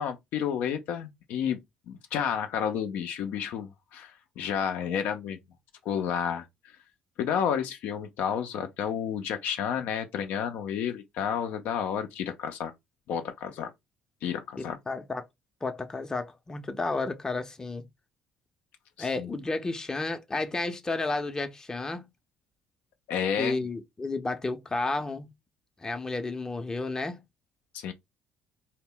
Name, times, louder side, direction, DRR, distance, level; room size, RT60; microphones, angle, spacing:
voice 1, 0.0-1.6 1.9-5.4 5.9-6.5 7.2-12.7 13.1-13.7 14.2-14.8 19.0-19.3 23.1-23.6 27.7-27.9, left 8 dB, 70° left, 0.4 m, -31 dB
voice 2, 14.6-15.2 15.6-17.8 19.0-22.1 23.4-25.3 25.8-27.2, left 3 dB, 20° left, 0.5 m, -32 dB
2.1 x 2.1 x 3.7 m
supercardioid pair, 70°, 3 cm